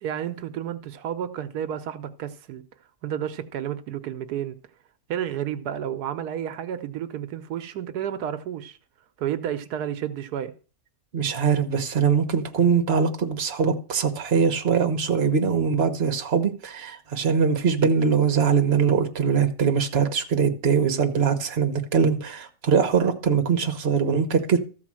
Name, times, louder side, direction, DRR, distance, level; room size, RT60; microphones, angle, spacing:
voice 1, 0.0-2.6 3.0-4.6 5.1-8.8 9.2-10.5, right 10 dB, 85° right, 1.3 m, -31 dB
voice 2, 11.1-24.6, right 6 dB, 45° right, 1.3 m, -22 dB
13.5 x 4.6 x 7.5 m
omnidirectional pair, 1.6 m